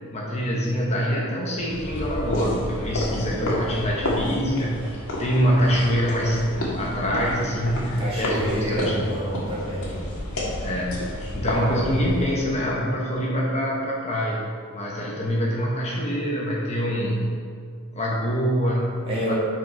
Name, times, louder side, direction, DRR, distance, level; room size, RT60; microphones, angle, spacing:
voice 1, 0.1-9.1 10.6-14.4 14.7-17.3 17.9-19.3, equal, 30° left, -3 dB, 1.0 m, -25 dB
sound 1, 1.6-12.5, left 1 dB, 80° left, 1.8 m, -30 dB
voice 2, 8.0-10.0 19.1-19.3, equal, 25° right, -7 dB, 2.2 m, -28 dB
8.5 x 5.6 x 4.6 m, 2.1 s
head